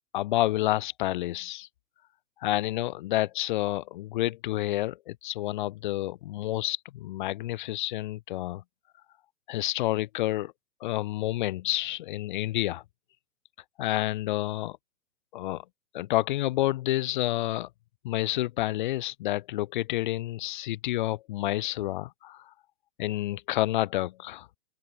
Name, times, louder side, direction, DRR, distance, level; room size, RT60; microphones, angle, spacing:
voice 1, 0.1-1.7 2.4-8.6 9.5-10.5 10.8-12.8 13.8-14.8 15.3-15.6 15.9-17.7 18.0-22.5 23.0-24.5, left 15 dB, 40° left, 0.4 m, -29 dB
open air
hypercardioid pair, 115°, 40 cm